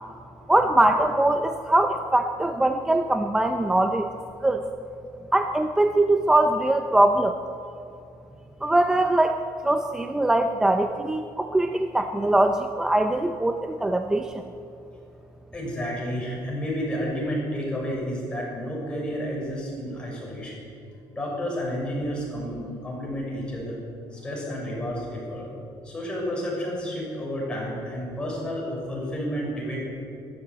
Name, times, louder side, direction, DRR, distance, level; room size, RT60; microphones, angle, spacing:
voice 1, 0.5-4.1 4.4-4.7 5.3-7.4 8.6-14.4, right 1 dB, 5° right, 6 dB, 0.7 m, -22 dB
voice 2, 15.5-20.7 21.1-23.8 24.1-25.5 25.8-29.8, equal, 10° left, -4 dB, 6.7 m, -31 dB
29.0 x 13.5 x 8.7 m, 2.6 s
cardioid pair, 180°, 8 cm